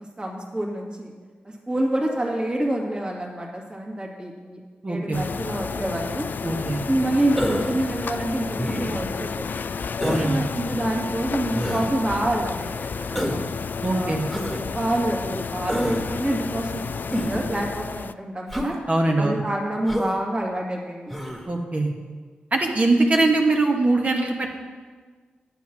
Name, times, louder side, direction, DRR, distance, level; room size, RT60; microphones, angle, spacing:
voice 1, 0.2-1.1 1.7-4.6 4.9-6.3 6.9-9.6 10.2-13.5 13.9-18.8 19.2-21.2, right 1 dB, 25° right, -2 dB, 2.2 m, -27 dB
voice 2, 4.8-5.2 6.4-6.8 10.0-10.5 13.8-14.2 18.9-19.4 21.5-21.9 22.5-24.6, right 2 dB, 40° right, 1 dB, 1.5 m, -22 dB
sound 1, 5.1-18.1, left 5 dB, 60° left, 0.3 m, -31 dB
Human voice, 7.4-7.8 8.6-9.1 10.0-10.3 11.5-11.9 13.1-13.5 14.3-14.6 15.7-16.0 17.1-17.5 18.5-18.7 19.9-20.2 21.1-21.4, equal, ahead, 1.8 m, -28 dB
9.0 x 7.8 x 6.1 m, 1.5 s
cardioid pair, 45°, 4 cm